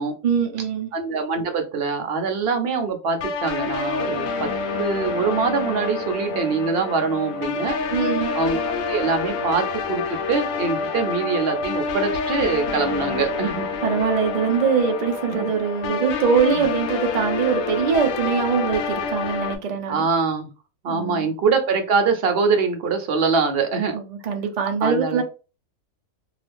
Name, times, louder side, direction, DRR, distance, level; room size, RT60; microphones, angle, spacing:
voice 1, 0.2-0.9 7.9-8.3 13.8-20.0 20.9-21.3 23.9-25.2, right 6 dB, 80° right, 0.3 m, -22 dB
voice 2, 0.9-4.5 4.8-7.8 8.3-13.6 15.3-15.5 19.9-20.5 20.8-24.0 24.8-25.2, right 4 dB, 55° right, 0.7 m, -23 dB
sound 1, 3.2-19.6, left 4 dB, 80° left, 1.0 m, -27 dB
2.8 x 2.4 x 3.3 m
omnidirectional pair, 1.5 m